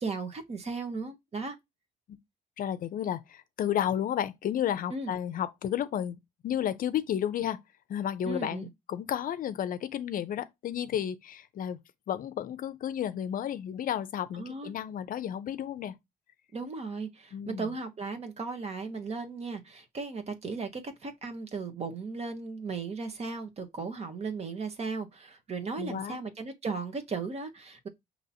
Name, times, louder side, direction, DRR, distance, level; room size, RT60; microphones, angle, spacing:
voice 1, 0.0-1.6 4.9-5.1 8.2-8.7 14.4-14.7 16.5-27.9, right 4 dB, 40° right, 1.0 m, -36 dB
voice 2, 2.6-6.2 6.4-7.6 7.9-11.8 12.1-15.9 17.3-17.7 25.8-26.2, left 10 dB, 60° left, 0.5 m, -32 dB
5.5 x 2.9 x 2.7 m
cardioid pair, 105°, 16 cm